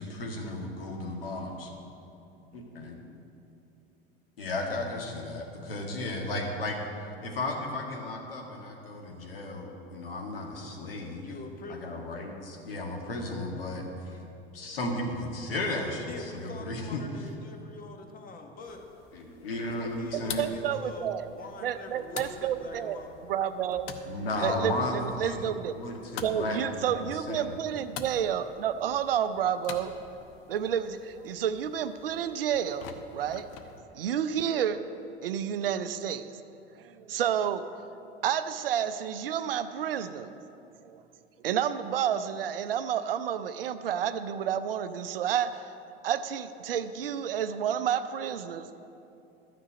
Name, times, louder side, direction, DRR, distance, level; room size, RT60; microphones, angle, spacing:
voice 1, 0.0-1.7 2.5-3.0 4.4-6.8 7.2-11.3 11.7-14.2 14.5-17.0 19.1-20.5 24.1-27.6, left 2 dB, 70° left, 1 dB, 1.8 m, -34 dB
voice 2, 11.2-12.1 16.1-18.8 19.5-23.2, left 3 dB, 30° left, 4 dB, 1.5 m, -44 dB
sound 1, 18.6-33.8, left 7 dB, 50° left, 0.9 m, -47 dB
voice 3, 20.4-21.3 21.6-23.0 23.3-23.9 24.4-25.7 26.2-29.9 30.5-32.9 33.1-33.5 33.9-34.8 35.2-36.2 36.8-37.7 38.2-40.3 40.8-41.0 41.4-45.7 46.0-48.8, right 9 dB, 70° right, 11 dB, 0.6 m, -30 dB
12.5 x 6.1 x 8.0 m, 2.8 s
figure-of-eight pair, 75°, 30 cm